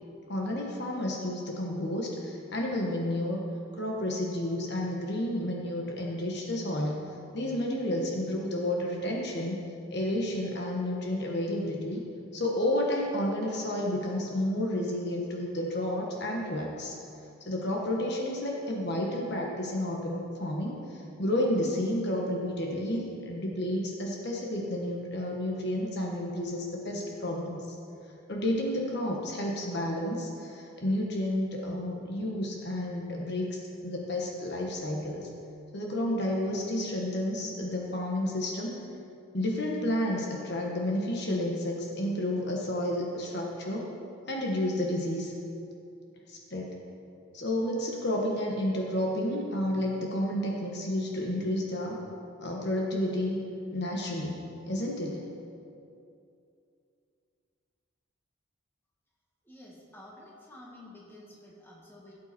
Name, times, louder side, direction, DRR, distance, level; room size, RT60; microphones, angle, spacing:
voice 1, 0.3-3.4 3.7-7.1 7.3-9.6 9.9-12.0 12.3-17.0 17.4-27.6 28.3-35.3 35.7-38.8 39.3-43.9 44.3-45.3 46.3-46.7 47.3-52.0 52.4-53.4 53.7-55.2, left 1 dB, 50° left, -1 dB, 1.3 m, -31 dB
voice 2, 59.5-62.1, left 1 dB, 10° left, -4 dB, 1.8 m, -50 dB
16.5 x 7.9 x 4.3 m, 2.6 s
head